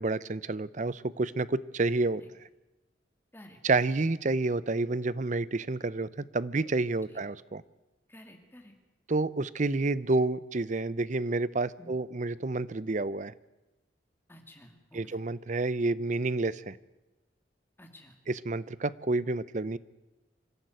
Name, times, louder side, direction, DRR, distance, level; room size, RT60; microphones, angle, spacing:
voice 1, 0.0-2.2 3.6-7.6 9.1-13.3 14.9-16.8 18.3-19.8, right 3 dB, 40° right, 18 dB, 0.6 m, -29 dB
voice 2, 3.3-3.9 7.1-7.2 8.1-8.7 11.8-11.9 14.3-15.2 17.8-18.2, left 1 dB, 10° left, 5 dB, 2.4 m, -53 dB
26.0 x 12.0 x 9.5 m, 1.1 s
head